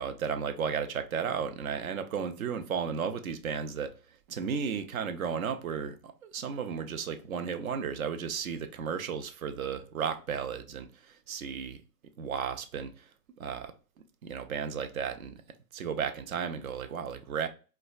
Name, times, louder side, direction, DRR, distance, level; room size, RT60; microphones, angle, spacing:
voice 1, 0.0-3.9 4.3-11.8 12.2-13.1 13.4-13.7 14.2-15.4 15.7-17.5, right 7 dB, 60° right, 0.6 m, -34 dB
4.2 x 2.2 x 2.3 m
hypercardioid pair, 145°, 48 cm